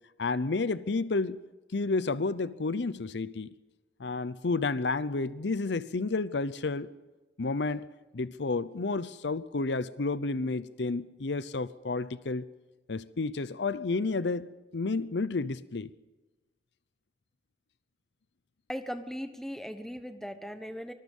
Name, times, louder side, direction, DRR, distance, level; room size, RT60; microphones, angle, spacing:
voice 1, 0.2-1.4 1.7-3.5 4.0-6.9 7.4-7.9 8.1-12.5 12.9-15.9, left 3 dB, 80° left, 0.7 m, -31 dB
voice 2, 18.7-20.9, equal, ahead, 1.1 m, -38 dB
24.5 x 20.5 x 5.5 m
head